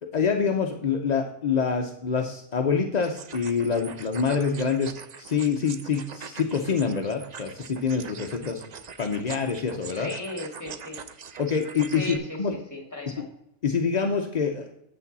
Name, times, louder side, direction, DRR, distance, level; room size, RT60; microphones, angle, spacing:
voice 1, 0.0-8.6 9.0-10.1 11.4-12.5 13.6-14.7, left 5 dB, 50° left, 3 dB, 0.5 m, -26 dB
sound 1, 3.0-12.2, right 6 dB, 80° right, 0.3 m, -42 dB
voice 2, 9.9-11.0 11.9-13.3, left 2 dB, 10° left, 2 dB, 1.9 m, -36 dB
8.5 x 7.6 x 4.0 m, 0.79 s
omnidirectional pair, 1.5 m